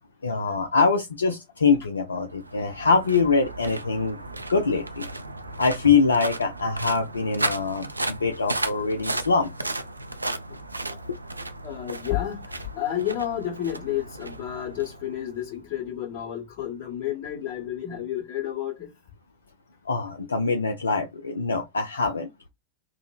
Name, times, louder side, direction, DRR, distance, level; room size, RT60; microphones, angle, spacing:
voice 1, 0.2-4.2 4.5-5.0 5.6-9.5 11.1-11.2 19.9-22.3, left 4 dB, 75° left, 0.4 m, -24 dB
sound 1, 2.1-15.5, right 2 dB, 85° right, 0.3 m, -34 dB
voice 2, 11.6-18.9, left 11 dB, 45° left, 1.6 m, -31 dB
3.6 x 2.0 x 2.3 m
figure-of-eight pair, 90°, 0 cm